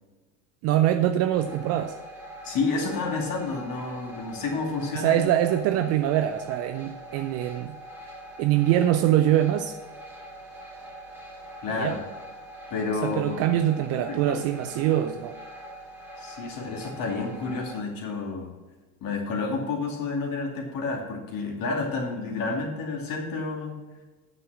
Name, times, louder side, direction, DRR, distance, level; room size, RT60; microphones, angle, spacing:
voice 1, 0.6-2.0 4.9-7.8 8.4-9.7 11.7-11.9 13.0-15.4, right 12 dB, 30° right, 9 dB, 0.4 m, -23 dB
sound 1, 1.3-17.8, right 1 dB, 5° right, 2.2 m, -43 dB
voice 2, 2.4-5.2 11.6-12.0 12.7-13.4 14.3-14.4 16.2-18.5 19.0-23.8, left 4 dB, 40° left, 1 dB, 2.5 m, -30 dB
9.5 x 5.9 x 6.1 m, 1.3 s
figure-of-eight pair, 75°, 49 cm